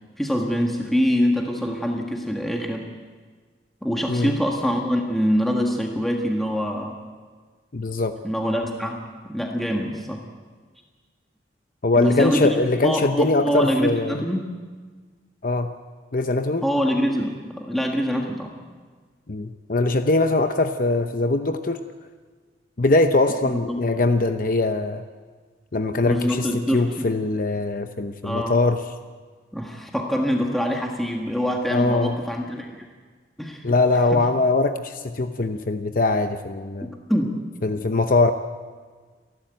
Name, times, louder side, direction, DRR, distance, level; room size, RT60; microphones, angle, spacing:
voice 1, 0.2-2.9 3.8-7.0 8.2-9.0 9.2-10.3 11.9-12.6 12.8-14.5 16.6-18.5 23.4-23.8 26.1-27.1 28.2-28.6 29.5-32.9 33.4-33.7 34.1-34.2 36.8-37.3, equal, ahead, 0 dB, 1.6 m, -24 dB
voice 2, 7.7-8.2 11.8-14.2 15.4-15.7 16.1-16.7 19.3-21.8 22.8-25.0 25.7-28.8 31.7-32.2 33.6-36.9 37.6-38.3, left 2 dB, 50° left, 8 dB, 0.8 m, -22 dB
30.0 x 12.0 x 9.1 m, 1.5 s
head